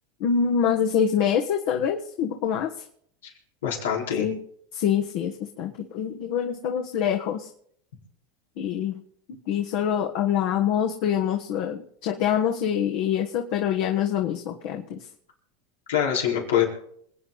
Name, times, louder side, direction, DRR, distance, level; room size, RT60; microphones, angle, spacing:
voice 1, 0.2-2.7 4.2-4.4 4.7-7.5 8.6-9.0 9.5-15.1, left 8 dB, 60° left, 2 dB, 1.5 m, -25 dB
voice 2, 3.6-4.3 15.9-16.7, left 9 dB, 90° left, -1 dB, 4.4 m, -24 dB
27.0 x 9.4 x 4.1 m, 0.67 s
supercardioid pair, 120°, 0 cm